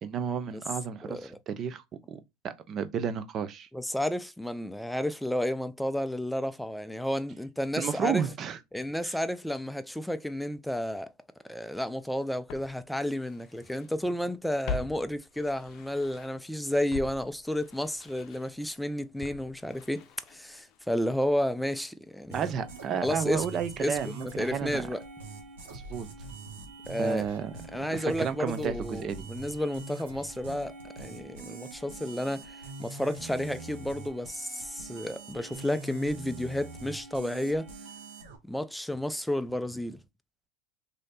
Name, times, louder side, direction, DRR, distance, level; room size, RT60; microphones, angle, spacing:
voice 1, 0.0-1.8 2.1-2.2 2.4-3.7 7.8-8.6 9.0-9.2 22.3-24.8 25.7-26.1 27.0-27.5 27.9-29.3, right 7 dB, 40° right, 0.6 m, -32 dB
voice 2, 1.0-1.4 3.7-8.3 8.7-11.1 11.4-22.5 23.0-23.5 23.8-24.0 24.4-25.0 26.9-27.3 27.7-30.7 31.0-37.7 38.5-40.0, left 1 dB, ahead, 0.4 m, -31 dB
Walk footsteps, 11.8-11.9 12.5-14.0 14.2-16.5 16.9-21.0 21.2-21.3, left 5 dB, 55° left, 0.6 m, -43 dB
sound 1, 22.3-38.4, right 3 dB, 80° right, 1.2 m, -44 dB
3.1 x 2.8 x 4.0 m
hypercardioid pair, 100°, 0 cm